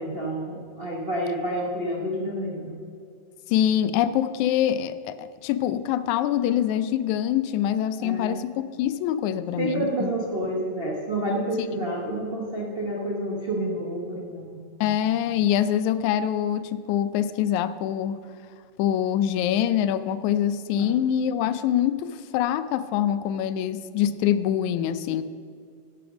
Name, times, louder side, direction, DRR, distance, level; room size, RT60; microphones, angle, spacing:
voice 1, 0.0-2.8 8.0-8.4 9.6-14.5 20.8-21.0, right 1 dB, 90° right, -3 dB, 0.5 m, -29 dB
voice 2, 3.5-10.1 14.8-18.2 18.8-25.2, left 10 dB, 90° left, 13 dB, 2.0 m, -24 dB
11.0 x 7.8 x 6.1 m, 2.3 s
omnidirectional pair, 3.3 m